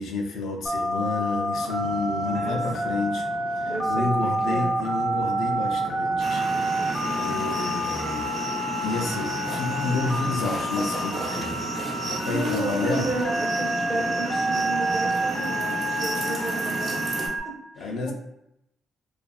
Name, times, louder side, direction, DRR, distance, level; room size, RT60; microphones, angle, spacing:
voice 1, 0.0-3.2 3.6-6.4 7.2-8.4 8.8-11.6 12.0-13.1 17.8-18.1, left 3 dB, 80° left, 2 dB, 0.4 m, -30 dB
Telephone, 0.7-17.4, right 1 dB, 15° left, 0.6 m, -28 dB
sound 1, 1.5-11.7, right 3 dB, 90° right, 0.4 m, -42 dB
voice 2, 2.2-2.6 2.8-3.1 3.7-4.8 11.9-17.3 17.8-18.1, right 1 dB, 20° right, -1 dB, 0.7 m, -33 dB
sound 2, 6.2-17.3, right 1 dB, 50° right, 0.8 m, -32 dB
2.6 x 2.3 x 2.3 m, 0.83 s
cardioid pair, 90°, 0 cm